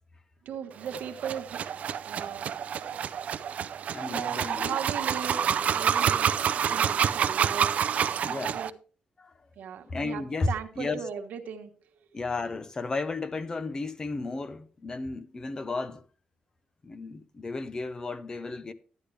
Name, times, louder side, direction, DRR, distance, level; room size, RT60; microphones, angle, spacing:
voice 1, 0.4-1.6 2.0-2.5 4.1-6.4 6.7-7.8 8.2-8.7 9.6-11.7, right 7 dB, 85° right, 1.3 m, -37 dB
sound 1, 0.8-8.7, right 8 dB, 55° right, 0.5 m, -28 dB
voice 2, 3.9-4.8 8.2-8.6 9.2-9.4 9.9-10.5 10.8-11.0 12.1-16.0 16.8-18.7, left 3 dB, 25° left, 0.7 m, -33 dB
12.0 x 10.0 x 3.3 m
wide cardioid pair, 170°, 3 cm